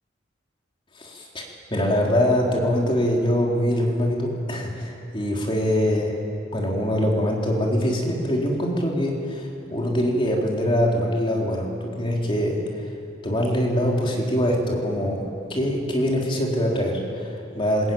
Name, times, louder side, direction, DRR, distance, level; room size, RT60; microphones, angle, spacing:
voice 1, 1.0-6.1 6.5-12.9 13.2-17.9, equal, 25° left, -1 dB, 3.6 m, -23 dB
21.0 x 20.5 x 9.3 m, 2.6 s
head